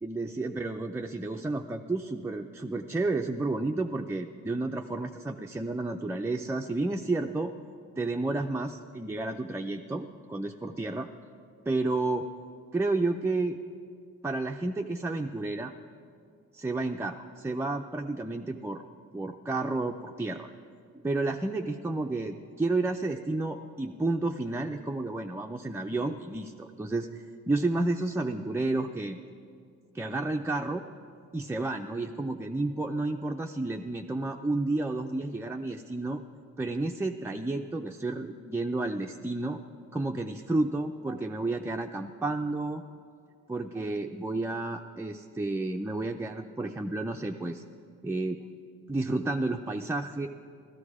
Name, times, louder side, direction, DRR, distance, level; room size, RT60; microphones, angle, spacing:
voice 1, 0.0-7.5 8.0-11.1 11.7-12.3 12.7-13.6 14.2-15.7 16.5-20.5 21.0-29.2 29.9-30.8 31.3-36.2 36.6-39.6 39.9-42.8 43.5-47.6 48.0-48.4 48.9-50.3, right 2 dB, 10° right, 3 dB, 0.4 m, -31 dB
14.0 x 13.0 x 4.8 m, 2.3 s
cardioid pair, 90°, 30 cm